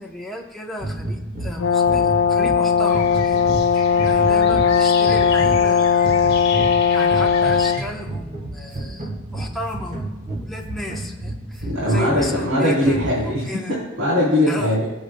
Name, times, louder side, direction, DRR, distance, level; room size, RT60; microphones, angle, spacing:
voice 1, 0.0-6.1 6.9-13.7 14.5-14.7, left 1 dB, ahead, -2 dB, 0.8 m, -34 dB
sound 1, 0.8-13.5, right 1 dB, 40° right, 1.5 m, -31 dB
Brass instrument, 1.6-7.8, left 7 dB, 80° left, 0.5 m, -18 dB
sound 2, 2.8-7.8, left 6 dB, 55° left, 1.5 m, -33 dB
voice 2, 11.6-14.9, left 1 dB, 75° right, -7 dB, 3.5 m, -20 dB
22.0 x 7.8 x 2.2 m, 1.1 s
head